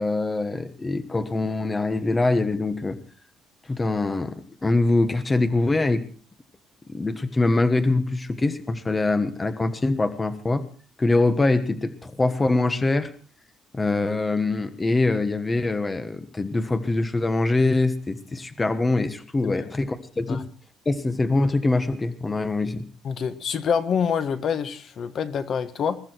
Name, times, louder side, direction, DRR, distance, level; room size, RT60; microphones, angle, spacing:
voice 1, 0.0-3.0 3.7-6.0 6.9-10.6 11.0-13.1 13.7-20.4 20.8-22.8, left 2 dB, 15° left, 10 dB, 1.3 m, -23 dB
voice 2, 23.0-26.0, left 7 dB, 45° left, 10 dB, 1.5 m, -26 dB
22.0 x 13.5 x 4.5 m, 0.41 s
cardioid pair, 165°, 0 cm